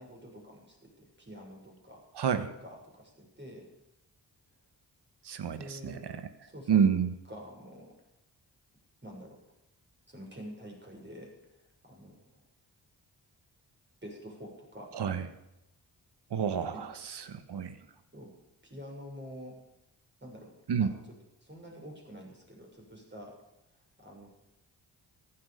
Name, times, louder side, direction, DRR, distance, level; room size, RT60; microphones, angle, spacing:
voice 1, 0.0-2.0 2.3-3.7 5.5-6.1 6.4-6.8 7.3-8.0 9.0-9.4 10.1-11.3 11.8-12.3 14.0-15.0 16.7-16.8 18.1-18.4 18.6-19.6 20.2-20.5 20.8-20.9 21.4-23.4 24.0-24.3, equal, 25° right, -1 dB, 6.9 m, -47 dB
voice 2, 5.2-6.2 6.7-7.1 14.9-15.3 16.3-16.9 17.3-17.8 20.7-20.9, right 7 dB, 65° right, 10 dB, 1.4 m, -28 dB
15.0 x 12.0 x 5.2 m, 0.90 s
supercardioid pair, 45°, 43 cm